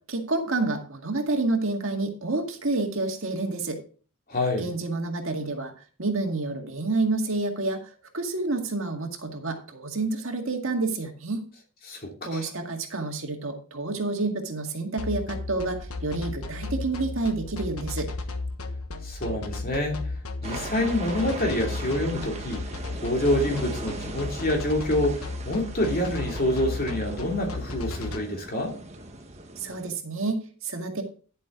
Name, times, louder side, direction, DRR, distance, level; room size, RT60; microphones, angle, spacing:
voice 1, 0.1-3.8 4.6-5.7 6.0-7.8 8.1-11.4 12.3-18.1 29.6-31.0, right 3 dB, 65° right, 2.0 m, -29 dB
voice 2, 4.3-4.7 11.8-12.5 19.0-20.0 20.4-22.6 23.0-28.7, left 1 dB, 40° left, 2.7 m, -27 dB
sound 1, 15.0-28.2, left 3 dB, 80° left, 1.3 m, -34 dB
sound 2, 20.4-29.9, right 2 dB, 30° right, 1.3 m, -39 dB
10.5 x 7.6 x 3.8 m
head